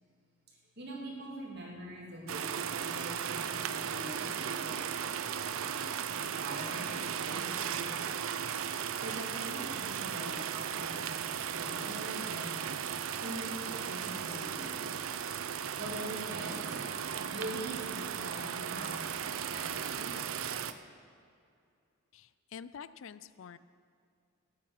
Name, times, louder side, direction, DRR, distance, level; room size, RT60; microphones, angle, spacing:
voice 1, 0.5-4.9 5.6-8.4 8.9-12.9 13.2-14.9 15.6-19.0 19.5-20.6, right 1 dB, 50° right, -3 dB, 3.0 m, -44 dB
sound 1, 2.3-20.7, right 8 dB, 75° right, 0.5 m, -36 dB
voice 2, 22.1-23.6, left 7 dB, 65° left, 15 dB, 0.4 m, -47 dB
11.5 x 8.8 x 8.1 m, 2.4 s
head